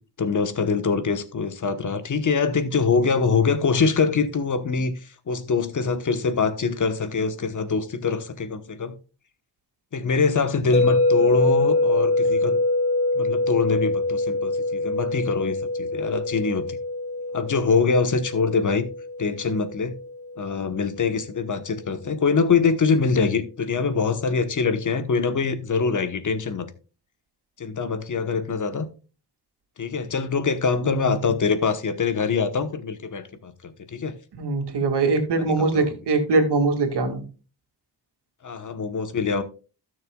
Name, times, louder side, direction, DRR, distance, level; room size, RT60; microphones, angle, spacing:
voice 1, 0.2-8.9 9.9-12.6 13.1-16.8 17.3-18.9 19.2-19.9 20.4-26.7 27.6-28.9 29.8-34.1 35.4-35.9 38.4-39.4, left 5 dB, 50° left, 1.2 m, -24 dB
sound 1, 10.7-20.8, left 2 dB, 15° left, 1.8 m, -24 dB
voice 2, 30.8-31.2 34.3-37.2, right 3 dB, 90° right, 2.1 m, -22 dB
16.0 x 6.6 x 2.3 m
wide cardioid pair, 125°, 39 cm